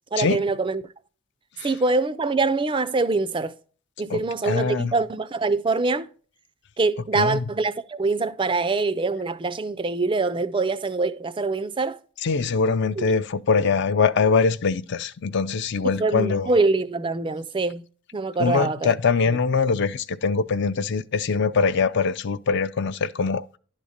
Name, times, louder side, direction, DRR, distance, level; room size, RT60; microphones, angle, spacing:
voice 1, 0.1-0.8 1.6-3.5 4.0-6.1 6.8-12.0 13.0-13.1 16.0-17.8 18.1-18.9 19.3-19.4, right 3 dB, 20° right, 0.4 m, -24 dB
voice 2, 4.1-4.9 7.1-7.4 12.2-16.5 18.4-23.6, left 5 dB, 50° left, 0.4 m, -23 dB
11.0 x 4.1 x 4.9 m
head